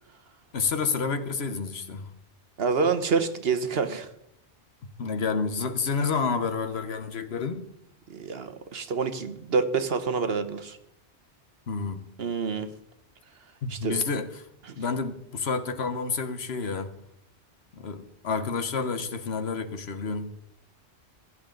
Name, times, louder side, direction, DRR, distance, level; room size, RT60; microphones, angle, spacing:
voice 1, 0.5-2.1 5.0-7.7 11.7-12.1 13.6-14.5 14.8-16.9 17.7-20.3, left 5 dB, 70° left, 1.2 m, -29 dB
voice 2, 2.6-4.1 8.1-10.8 12.2-12.7 13.7-14.0 14.6-14.8, right 5 dB, 60° right, 1.2 m, -27 dB
15.5 x 11.5 x 3.8 m
omnidirectional pair, 1.1 m